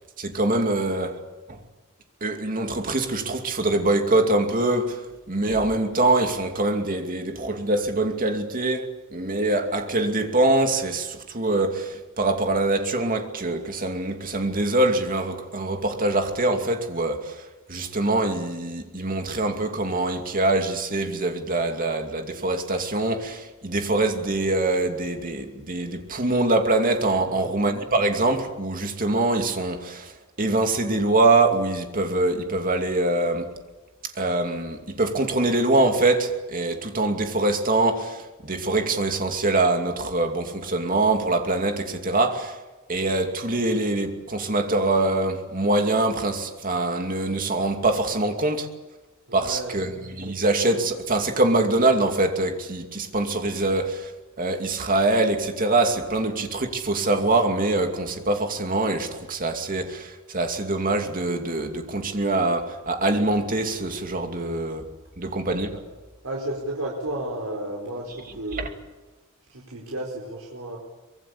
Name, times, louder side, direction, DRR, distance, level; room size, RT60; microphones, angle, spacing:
voice 1, 0.2-1.2 1.5-1.6 2.2-33.5 34.0-42.6 42.9-48.7 49.3-54.1 54.4-64.8 65.2-65.8 68.5-68.7, right 2 dB, 40° right, 2.6 m, -24 dB
voice 2, 49.3-49.8 66.2-68.7 69.5-70.8, right 1 dB, 75° right, 4.6 m, -32 dB
24.5 x 22.0 x 8.7 m
head